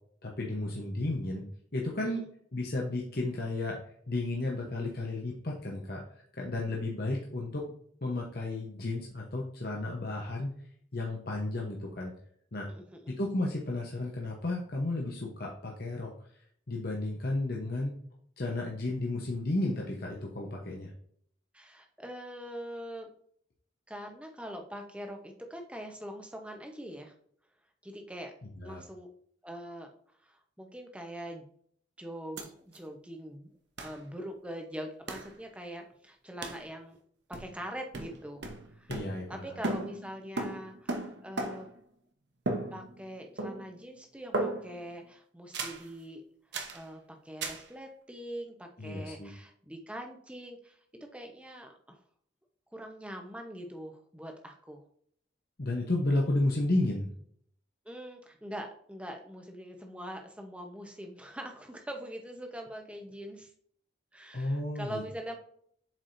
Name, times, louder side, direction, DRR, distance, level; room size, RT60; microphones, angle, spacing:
voice 1, 0.2-1.5 1.7-3.8 4.1-6.0 6.3-7.7 8.0-10.5 10.9-12.1 12.5-12.7 13.1-16.1 16.7-18.0 18.4-20.9 28.4-28.8 38.9-39.6 48.8-49.3 55.6-57.1 64.3-65.0, left 2 dB, 50° left, -1 dB, 1.0 m, -33 dB
voice 2, 12.7-13.2 21.5-23.1 23.9-27.1 27.8-28.3 28.6-29.1 29.4-29.9 30.2-31.5 32.0-37.0 37.3-38.4 38.7-38.9 39.3-41.7 42.7-46.2 46.7-50.8 51.1-52.0 52.7-54.8 57.8-63.5 64.1-65.4, equal, 5° right, 3 dB, 0.9 m, -43 dB
sound 1, 32.4-32.5 32.7-32.8 33.8-34.0 35.1-35.3 36.4-36.7 37.3-37.7 37.9-39.4 39.6-41.8 42.5-43.1 43.4-43.8 44.3-44.9 45.5-45.9 46.5-46.8 47.4-47.7, right 2 dB, 60° right, 1.0 m, -36 dB
7.4 x 4.9 x 2.7 m, 0.63 s
head